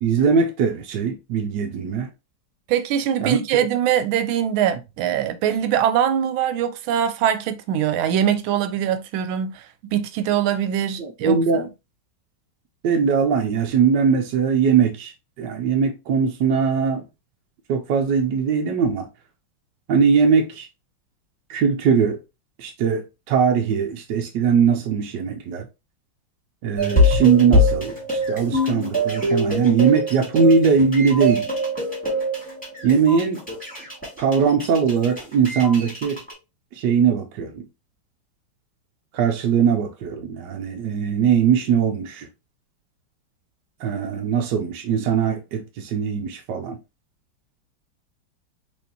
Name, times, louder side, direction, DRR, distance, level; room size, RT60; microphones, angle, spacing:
voice 1, 0.0-2.1 3.2-3.4 11.0-11.7 12.8-17.0 17.7-19.1 19.9-20.7 21.5-22.2 22.6-25.6 26.6-31.5 32.8-33.4 34.2-36.2 36.7-37.6 39.1-42.3 43.8-46.8, right 6 dB, 70° right, 1.1 m, -20 dB
voice 2, 2.7-9.7 9.9-11.7, right 9 dB, 90° right, 1.4 m, -22 dB
sound 1, 26.8-36.3, left 1 dB, 5° left, 1.8 m, -23 dB
4.4 x 3.1 x 2.7 m
omnidirectional pair, 2.2 m